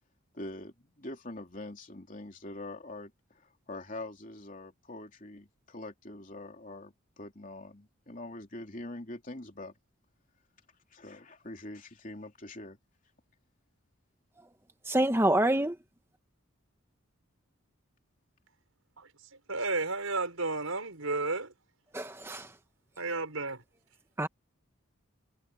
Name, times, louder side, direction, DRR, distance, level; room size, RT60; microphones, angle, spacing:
voice 1, 0.3-9.7 10.9-12.8, left 1 dB, 40° left, 3.3 m, -44 dB
voice 2, 14.9-15.7 21.9-22.5 24.2-24.3, right 1 dB, 10° right, 1.4 m, -26 dB
voice 3, 19.5-21.5 23.0-23.6, right 3 dB, 85° right, 5.8 m, -32 dB
head